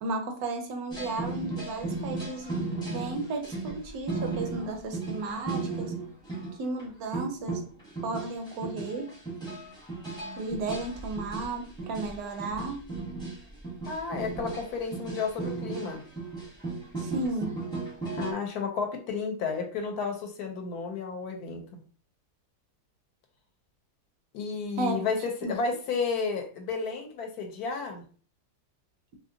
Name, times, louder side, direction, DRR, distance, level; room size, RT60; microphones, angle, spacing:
voice 1, 0.0-2.6 2.9-5.9 6.6-7.6 8.0-9.1 10.4-12.8 17.0-17.6 24.8-25.0 25.4-25.5, right 3 dB, 70° right, 4 dB, 1.0 m, -34 dB
sound 1, 0.9-6.5 6.8-6.9 7.1-18.3, right 3 dB, 5° left, 0.5 m, -35 dB
voice 2, 13.9-16.0 18.2-21.8 24.3-28.0, left 5 dB, 75° left, 4 dB, 1.1 m, -32 dB
2.8 x 2.7 x 2.6 m, 0.40 s
omnidirectional pair, 1.7 m